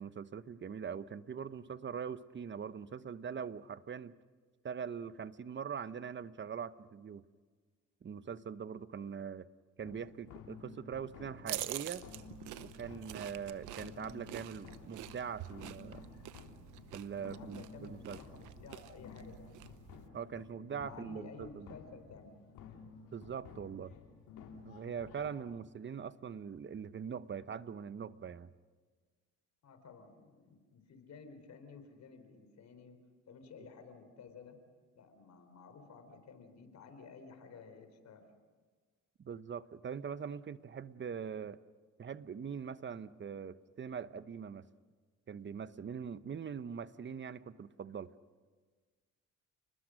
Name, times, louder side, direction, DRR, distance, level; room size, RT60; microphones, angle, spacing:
voice 1, 0.0-4.2 4.6-7.2 8.0-9.5 9.8-12.1 12.6-16.1 16.9-18.2 20.1-21.7 23.1-23.9 24.6-28.5 39.2-41.6 42.0-44.7 45.3-48.1, right 7 dB, 40° right, 14 dB, 0.9 m, -42 dB
sound 1, 9.8-25.3, left 5 dB, 85° left, 3.0 m, -53 dB
sound 2, 11.5-20.1, right 13 dB, 85° right, 0.9 m, -47 dB
voice 2, 17.2-19.7 20.3-22.4 29.6-33.0 33.3-34.6 35.0-38.3, left 5 dB, 65° left, 8 dB, 4.1 m, -54 dB
30.0 x 20.5 x 6.5 m, 1.4 s
cardioid pair, 90°, 30 cm